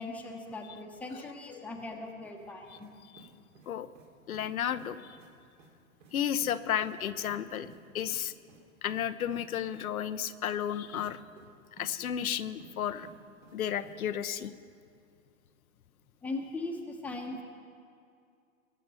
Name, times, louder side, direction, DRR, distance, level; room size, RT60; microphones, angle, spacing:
voice 1, 0.0-2.9 16.2-17.4, left 2 dB, 5° left, 2 dB, 1.0 m, -39 dB
sound 1, 2.8-2.9 3.2-4.1 4.3-4.5 4.8-4.9 5.2-5.3 5.6-5.7 6.0-6.1 6.4-6.5 6.8-6.9 7.2-7.8 8.1-8.2 8.5-8.6 8.9-9.0 9.3-9.4 9.7-9.8 10.9-11.0 11.4-11.9 12.2-12.7 13.0-13.6 13.8-14.0, right 5 dB, 60° right, 3.0 m, -53 dB
voice 2, 4.3-5.2 6.1-7.7 7.9-8.3 8.8-11.2 11.8-13.1 13.5-14.5, left 9 dB, 80° left, 12 dB, 0.7 m, -33 dB
21.0 x 7.4 x 5.6 m, 2.4 s
hypercardioid pair, 135°, 42 cm